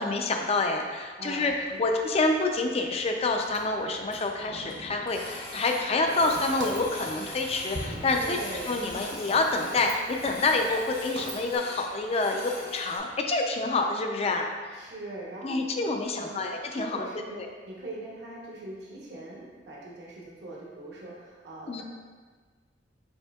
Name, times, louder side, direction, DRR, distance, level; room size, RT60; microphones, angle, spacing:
voice 1, 0.0-8.4 8.7-14.5 15.4-17.1 17.4-17.5 21.7-21.8, left 3 dB, 35° left, 3 dB, 0.4 m, -27 dB
voice 2, 1.2-1.9 8.2-8.7 14.7-15.7 16.0-16.4 16.7-21.8, right 2 dB, 70° right, -5 dB, 0.9 m, -41 dB
Printer, 1.4-1.7 2.2-2.3 2.5-2.6 2.9-3.0 3.2-4.2 4.7-13.0, left 1 dB, 55° left, 1.0 m, -42 dB
Thunder, 1.4-13.4, right 1 dB, 35° right, 0.5 m, -47 dB
Walk footsteps, 6.2-11.6, right 2 dB, 90° right, 0.5 m, -43 dB
5.4 x 4.2 x 2.3 m, 1.5 s
head